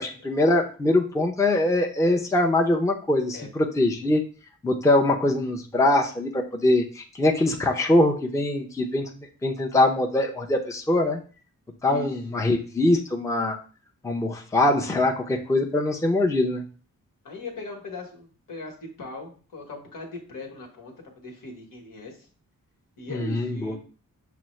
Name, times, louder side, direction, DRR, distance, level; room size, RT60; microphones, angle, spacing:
voice 1, 0.0-4.2 4.6-9.1 9.4-11.2 11.8-13.6 14.0-16.6 23.1-23.8, left 1 dB, 10° left, 2 dB, 0.5 m, -23 dB
voice 2, 17.2-22.3 23.0-23.8, left 2 dB, 70° left, 0 dB, 1.2 m, -39 dB
5.8 x 2.1 x 3.1 m, 0.39 s
cardioid pair, 65°, 34 cm